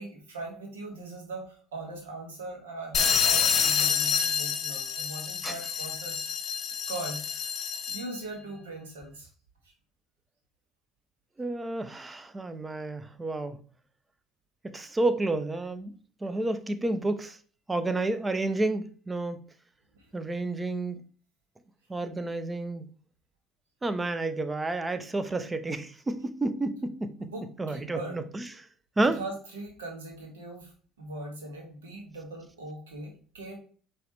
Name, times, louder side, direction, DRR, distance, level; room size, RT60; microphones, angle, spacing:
voice 1, 0.0-6.3 6.9-7.5 7.9-9.3 27.2-28.2 29.2-30.7 31.0-33.6, right 2 dB, 90° right, 0 dB, 1.4 m, -40 dB
sound 1, 2.9-8.2, left 7 dB, 55° left, 0.8 m, -28 dB
voice 2, 11.4-13.6 14.6-15.9 16.2-17.4 17.7-19.4 20.1-21.0 21.9-22.8 23.8-27.3 27.6-28.7 29.0-29.2, right 2 dB, 20° right, 11 dB, 0.6 m, -30 dB
4.7 x 3.0 x 3.1 m, 0.42 s
hypercardioid pair, 65°, 0 cm